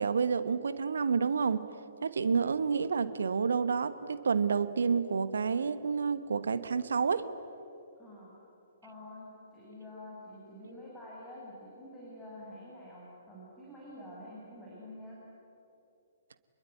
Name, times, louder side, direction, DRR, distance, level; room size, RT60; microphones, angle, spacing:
voice 1, 0.0-1.7 2.0-7.3, right 5 dB, 65° right, 14 dB, 1.2 m, -29 dB
voice 2, 8.0-8.3 8.8-15.2, left 1 dB, 10° left, -7 dB, 7.2 m, -48 dB
27.5 x 22.0 x 9.5 m, 2.8 s
figure-of-eight pair, 120°, 0 cm